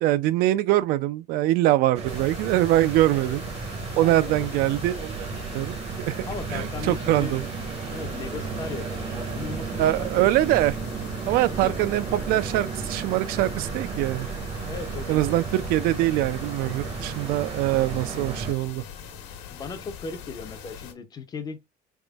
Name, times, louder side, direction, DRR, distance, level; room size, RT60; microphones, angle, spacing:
voice 1, 0.0-3.4 4.0-5.3 5.5-6.1 6.5-7.5 9.8-10.8 11.3-14.3 15.1-18.8, right 15 dB, 60° right, 0.4 m, -23 dB
sound 1, 1.9-18.5, right 5 dB, 35° right, 0.8 m, -34 dB
sound 2, 2.1-20.9, left 7 dB, 80° left, 1.2 m, -42 dB
voice 2, 3.9-4.5 6.3-7.4 7.9-10.3 11.3-11.8 14.7-15.6 19.5-21.7, left 4 dB, 25° left, 0.5 m, -37 dB
4.2 x 3.5 x 2.3 m
cardioid pair, 175°, 17 cm